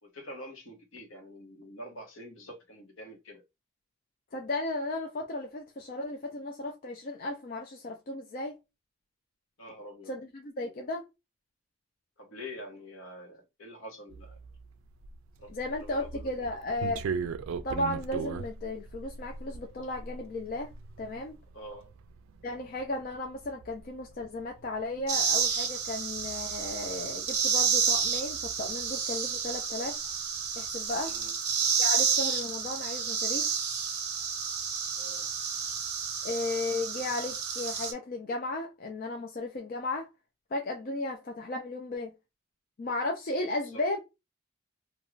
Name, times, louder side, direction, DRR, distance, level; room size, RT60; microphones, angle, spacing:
voice 1, 0.0-3.4 9.6-10.1 12.2-14.4 15.4-15.5 15.8-16.5 21.5-21.9 31.0-31.3 35.0-35.3 43.6-43.8, equal, 75° left, 1.0 m, -46 dB
voice 2, 4.3-8.6 10.1-11.1 15.5-17.1 17.6-20.7 21.0-21.4 22.4-30.0 30.6-31.1 31.8-33.5 36.2-40.1 40.5-42.1 42.8-44.0, left 2 dB, 45° left, 0.4 m, -35 dB
sound 1, 14.1-29.6 29.9-31.2, right 5 dB, 80° right, 0.3 m, -41 dB
sound 2, 25.1-37.9, right 6 dB, 50° right, 0.7 m, -30 dB
2.4 x 2.3 x 3.0 m
head